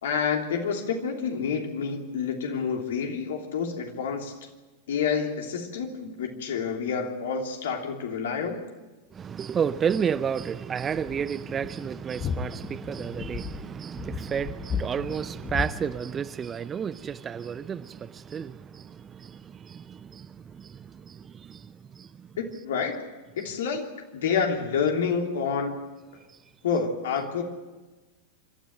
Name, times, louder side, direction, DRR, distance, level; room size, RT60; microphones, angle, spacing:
voice 1, 0.0-4.3 4.9-8.6 22.4-23.0 23.3-25.8 26.6-27.4, left 6 dB, 60° left, 3.1 m, -28 dB
voice 2, 9.1-22.3, right 7 dB, 20° right, 0.6 m, -32 dB
sound 1, 10.2-15.6, left 6 dB, 25° left, 1.3 m, -35 dB
26.0 x 13.5 x 8.9 m
figure-of-eight pair, 90°, 0 cm